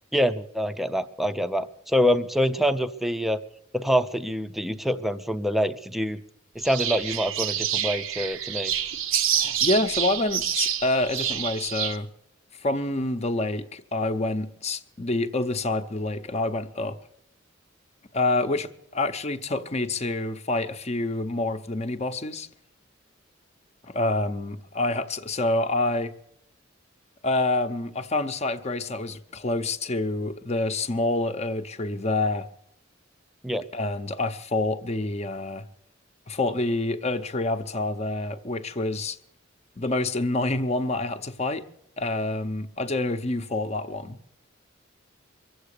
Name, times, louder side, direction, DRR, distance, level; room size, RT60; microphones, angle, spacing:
voice 1, 0.1-3.4 3.7-6.2 6.5-8.7 33.4-33.6, equal, ahead, 0.6 m, -25 dB
sound 1, 6.6-12.0, right 9 dB, 80° right, 0.9 m, -27 dB
voice 2, 9.3-12.1 12.6-17.0 18.1-22.5 23.8-26.1 27.2-32.5 33.7-35.7 36.3-39.2 39.8-41.6 42.0-44.2, left 2 dB, 35° left, 0.7 m, -27 dB
23.0 x 8.0 x 6.6 m
head